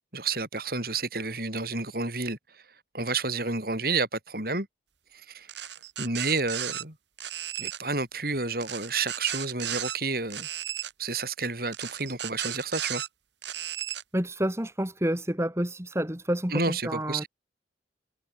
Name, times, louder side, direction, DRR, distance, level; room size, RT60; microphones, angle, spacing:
voice 1, 0.1-2.6 2.9-4.7 5.1-5.7 6.0-7.0 7.6-10.5 11.0-13.0 16.5-17.3, right 3 dB, 55° right, 7.1 m, -30 dB
sound 1, 5.5-6.8 7.2-7.8 8.6-10.0 10.3-10.9 11.7-13.1 13.4-14.0, right 11 dB, 75° right, 5.3 m, -35 dB
voice 2, 14.1-17.2, right 1 dB, 15° right, 1.9 m, -29 dB
head